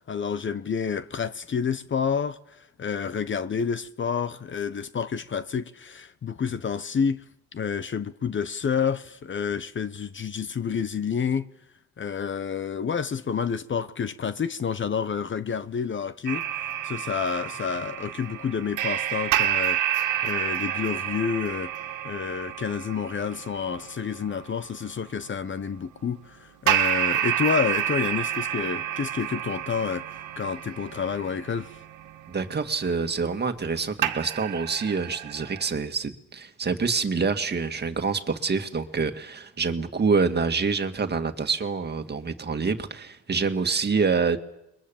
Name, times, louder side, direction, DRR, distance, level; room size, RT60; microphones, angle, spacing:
voice 1, 0.0-7.2 7.5-11.5 12.0-21.7 22.0-31.8, left 6 dB, 40° left, 1.0 m, -29 dB
sound 1, 16.3-25.0 26.7-33.8 34.0-35.7, right 11 dB, 90° right, 1.8 m, -29 dB
voice 2, 32.3-44.4, right 4 dB, 35° right, 2.0 m, -26 dB
29.5 x 22.0 x 7.2 m
cardioid pair, 90°, 30 cm